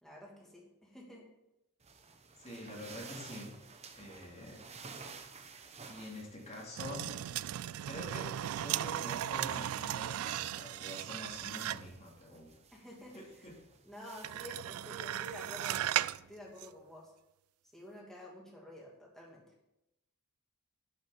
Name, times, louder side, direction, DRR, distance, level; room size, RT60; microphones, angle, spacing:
voice 1, 0.0-1.3 12.7-13.2 13.8-17.1 17.7-19.4, left 1 dB, ahead, -3 dB, 2.5 m, -50 dB
sound 1, 1.8-15.5, right 5 dB, 30° right, 0.9 m, -54 dB
voice 2, 2.4-4.7 5.9-7.1 7.8-12.6 13.1-13.6, left 1 dB, 30° left, -3 dB, 3.2 m, -46 dB
sound 2, 6.8-12.0 14.2-16.2 16.6-16.7, right 12 dB, 70° right, 0.3 m, -36 dB
11.0 x 6.3 x 5.9 m, 0.88 s
head